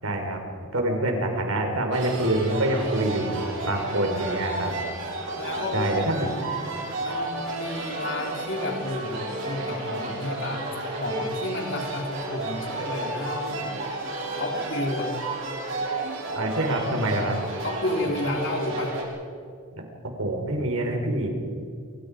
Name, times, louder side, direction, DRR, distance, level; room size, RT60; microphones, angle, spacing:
voice 1, 0.0-0.4 0.7-4.7 5.7-6.3 16.3-17.4 20.2-21.3, right 1 dB, 80° right, 3 dB, 4.7 m, -26 dB
sound 1, 1.9-19.0, right 2 dB, 65° right, 6.5 m, -32 dB
voice 2, 5.4-6.0 7.0-10.7 11.0-13.7 14.4-15.1 17.6-19.0, left 1 dB, 55° left, 1 dB, 3.7 m, -31 dB
26.0 x 25.0 x 5.2 m, 2.2 s
head